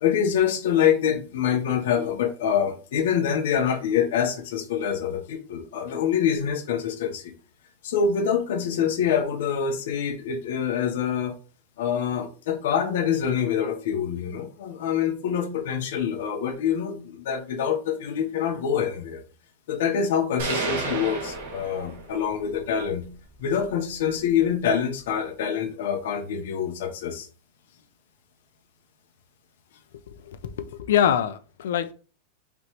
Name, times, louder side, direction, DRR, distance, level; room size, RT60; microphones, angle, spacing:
voice 1, 0.0-7.3 7.8-11.4 11.8-19.2 19.7-23.1 23.4-27.3, left 8 dB, 70° left, 5 dB, 0.9 m, -25 dB
sound 1, 20.4-22.4, right 3 dB, 70° right, 1.5 m, -31 dB
voice 2, 30.1-31.9, left 9 dB, 85° left, 12 dB, 0.5 m, -25 dB
5.2 x 3.1 x 3.0 m, 0.37 s
supercardioid pair, 180°, 0 cm